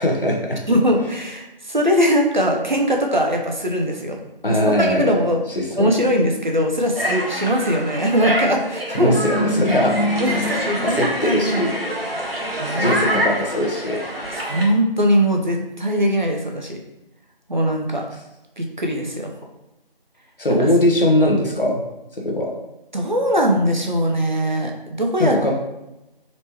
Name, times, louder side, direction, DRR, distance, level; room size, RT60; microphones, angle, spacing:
voice 1, 0.0-0.6 4.4-5.1 5.6-5.9 8.9-11.7 12.7-14.0 20.4-21.8 22.2-22.5 25.2-25.6, left 1 dB, 70° left, -1 dB, 1.1 m, -20 dB
voice 2, 0.7-4.2 4.5-5.4 5.8-9.1 10.2-11.7 12.3-13.1 14.3-16.8 17.5-18.1 18.6-19.3 20.5-20.7 22.9-25.4, equal, 50° right, 1 dB, 0.7 m, -21 dB
sound 1, 7.0-14.6, equal, 85° right, 1.1 m, -26 dB
4.2 x 3.1 x 2.9 m, 0.91 s
figure-of-eight pair, 170°, 29 cm